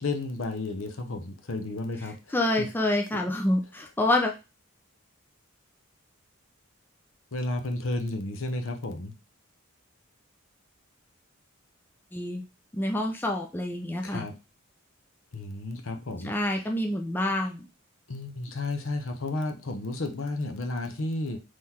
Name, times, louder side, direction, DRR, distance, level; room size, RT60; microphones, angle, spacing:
voice 1, 0.0-2.7 3.1-3.2 7.3-9.1 14.0-14.3 15.3-16.3 16.6-16.7 18.1-21.4, left 2 dB, 65° left, 5 dB, 0.8 m, -32 dB
voice 2, 2.3-4.4 12.1-12.4 12.7-14.2 16.2-17.7, left 1 dB, 10° left, 2 dB, 0.4 m, -27 dB
3.8 x 3.1 x 4.2 m, 0.29 s
head